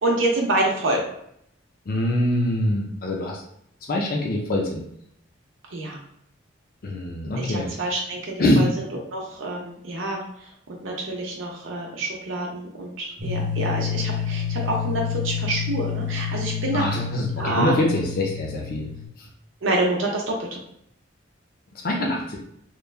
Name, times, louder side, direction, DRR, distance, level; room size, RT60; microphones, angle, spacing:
voice 1, 0.0-1.0 5.7-6.0 7.4-8.7 9.1-10.2 10.8-16.8 17.4-17.7 19.6-20.6, right 2 dB, 80° right, -2 dB, 0.6 m, -27 dB
voice 2, 1.9-3.4 3.9-4.8 6.8-7.7 8.4-8.7 16.7-18.9 21.8-22.4, left 1 dB, 45° left, -1 dB, 0.4 m, -23 dB
sound 1, 13.2-19.1, left 7 dB, 35° right, 0.5 m, -29 dB
3.1 x 2.3 x 2.2 m, 0.72 s
head